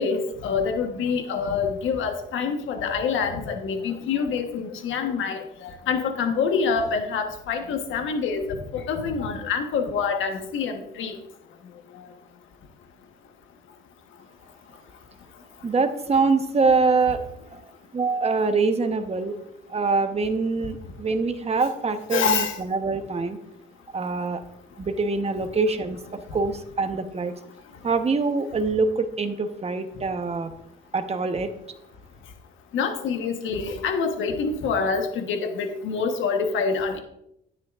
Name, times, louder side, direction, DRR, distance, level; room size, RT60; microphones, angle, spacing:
voice 1, 0.0-8.4 8.7-11.2 22.1-22.6 32.7-37.0, left 5 dB, 80° left, 5 dB, 1.2 m, -26 dB
voice 2, 15.6-17.2 17.5-17.6 17.9-19.4 19.7-23.4 23.9-24.4 24.8-27.3 27.8-30.5 30.9-31.5, right 4 dB, 30° right, 7 dB, 1.0 m, -24 dB
11.0 x 9.5 x 2.5 m, 0.78 s
cardioid pair, 90°, 20 cm